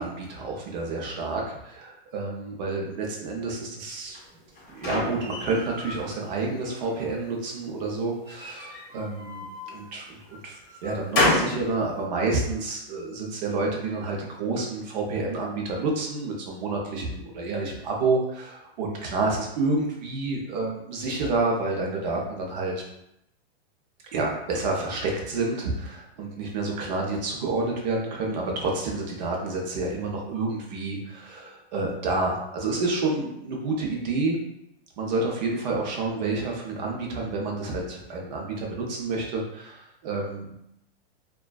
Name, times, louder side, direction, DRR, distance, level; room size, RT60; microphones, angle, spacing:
voice 1, 0.0-4.2 4.7-22.7 24.1-34.4 35.0-40.6, right 3 dB, 45° right, -1 dB, 0.6 m, -29 dB
sound 1, 4.1-6.1 6.5-7.3 8.2-9.7 10.3-11.6, left 2 dB, 20° left, 0.4 m, -29 dB
2.4 x 2.3 x 2.2 m, 0.82 s
hypercardioid pair, 155°, 32 cm